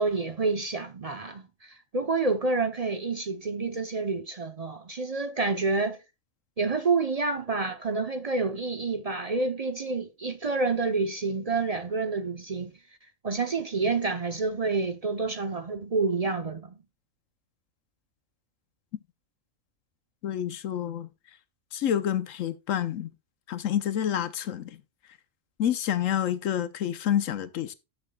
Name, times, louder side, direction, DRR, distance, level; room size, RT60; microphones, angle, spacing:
voice 1, 0.0-6.0 6.6-12.7 13.2-16.8, right 3 dB, 40° right, 0.6 m, -28 dB
voice 2, 20.2-21.1 21.7-23.1 23.5-24.8 25.6-27.7, left 10 dB, 90° left, 1.1 m, -28 dB
12.5 x 6.9 x 2.3 m
omnidirectional pair, 1.3 m